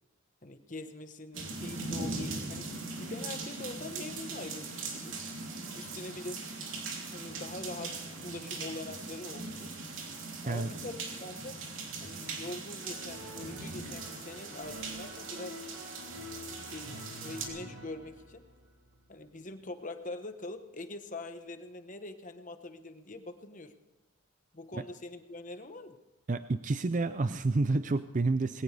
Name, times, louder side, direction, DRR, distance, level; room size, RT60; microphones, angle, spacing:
voice 1, 0.4-2.7 3.0-5.1 5.7-6.4 7.1-9.7 10.4-11.6 12.0-15.6 16.6-18.4 19.1-23.7 24.5-26.0, left 2 dB, 35° left, 7 dB, 1.1 m, -43 dB
sound 1, 1.3-17.5, right 3 dB, 60° right, 3.2 m, -40 dB
sound 2, 12.8-19.7, left 1 dB, 75° right, 7.1 m, -48 dB
voice 2, 26.3-28.6, right 3 dB, 35° right, 11 dB, 0.5 m, -29 dB
21.0 x 18.0 x 3.4 m, 1.1 s
head